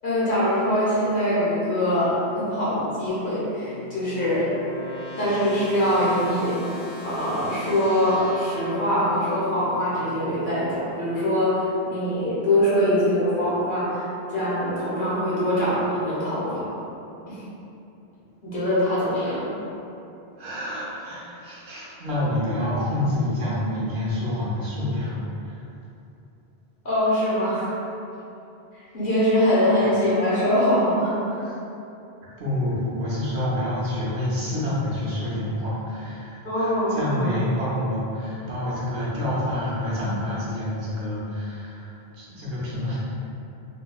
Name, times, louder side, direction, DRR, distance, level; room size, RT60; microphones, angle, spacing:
voice 1, 0.0-4.5 5.2-16.6 17.3-17.4 18.4-19.4 26.8-27.7 28.7-31.4 36.4-37.3, equal, 55° left, -10 dB, 1.1 m, -23 dB
sound 1, 3.1-10.2, right 1 dB, 15° left, 1.3 m, -39 dB
voice 2, 20.4-25.1 25.4-25.6 29.7-29.9 32.4-43.0, left 1 dB, 90° right, -8 dB, 1.1 m, -28 dB
3.4 x 3.0 x 2.2 m, 2.9 s
omnidirectional pair, 1.1 m